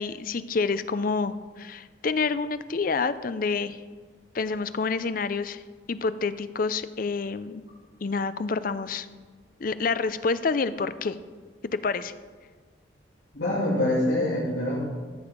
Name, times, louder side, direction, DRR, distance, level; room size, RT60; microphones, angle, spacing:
voice 1, 0.0-3.8 4.3-5.6 5.9-7.6 8.0-9.1 9.6-11.2 11.7-12.1, left 4 dB, 50° left, 13 dB, 0.5 m, -28 dB
voice 2, 13.3-14.8, left 1 dB, 65° left, -9 dB, 3.1 m, -25 dB
14.0 x 7.0 x 5.3 m, 1.5 s
head